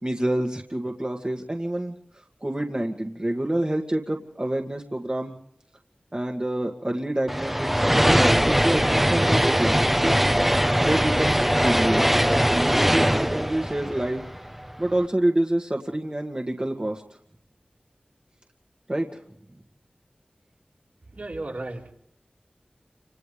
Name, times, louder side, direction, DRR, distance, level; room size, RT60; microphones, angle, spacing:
voice 1, 0.0-5.3 6.1-7.8 8.4-10.2 10.8-12.1 12.5-14.2 14.8-17.0 18.9-19.2, right 1 dB, 30° right, 2 dB, 2.1 m, -27 dB
sound 1, 7.3-14.7, equal, 5° right, 1.1 m, -21 dB
voice 2, 21.1-21.9, right 2 dB, 60° right, -1 dB, 4.4 m, -34 dB
30.0 x 27.0 x 3.5 m, 0.71 s
wide cardioid pair, 45°, 3 cm